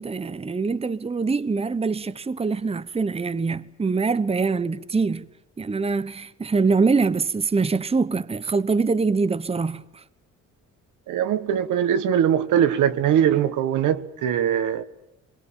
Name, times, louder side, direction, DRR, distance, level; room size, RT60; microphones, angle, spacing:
voice 1, 0.0-5.3 5.6-10.0, right 4 dB, 20° right, 0.9 m, -24 dB
voice 2, 11.1-14.8, right 9 dB, 80° right, 1.6 m, -21 dB
24.5 x 22.0 x 9.0 m
cardioid pair, 90°, 30 cm